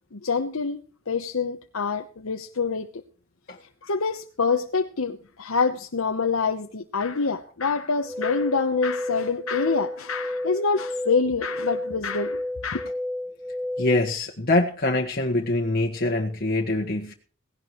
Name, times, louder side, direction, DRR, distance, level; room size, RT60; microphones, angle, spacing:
voice 1, 0.1-0.8 1.1-2.9 3.8-12.9, left 4 dB, 85° left, 5 dB, 1.0 m, -26 dB
sound 1, 8.0-14.1, left 1 dB, ahead, 0.8 m, -32 dB
voice 2, 13.8-17.1, left 2 dB, 50° left, 0 dB, 1.6 m, -24 dB
18.0 x 16.0 x 3.1 m, 0.42 s
head